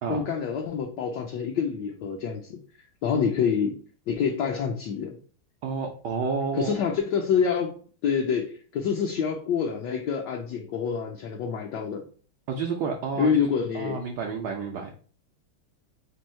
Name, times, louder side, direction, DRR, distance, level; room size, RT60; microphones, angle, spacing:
voice 1, 0.1-2.6 3.0-3.8 4.1-5.2 6.5-12.0 13.2-14.0, left 6 dB, 70° left, 1 dB, 1.0 m, -27 dB
voice 2, 5.6-6.7 12.5-13.3 13.7-14.9, right 5 dB, 75° right, 2 dB, 1.0 m, -30 dB
4.5 x 2.6 x 4.3 m, 0.43 s
omnidirectional pair, 2.4 m